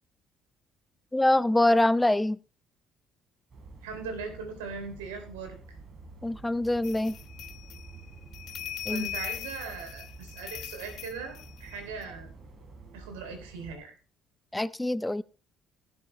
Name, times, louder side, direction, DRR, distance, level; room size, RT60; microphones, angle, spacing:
voice 1, 1.1-2.4 6.2-7.2 8.9-9.1 14.5-15.2, left 1 dB, 10° left, 0.5 m, -24 dB
sound 1, 3.5-13.8, right 3 dB, 50° right, 3.9 m, -49 dB
voice 2, 3.8-5.8 8.9-12.3 12.9-13.9, right 5 dB, 85° right, 3.2 m, -39 dB
sound 2, 6.8-12.0, left 11 dB, 65° left, 0.5 m, -40 dB
18.5 x 7.1 x 3.3 m
hypercardioid pair, 55°, 0 cm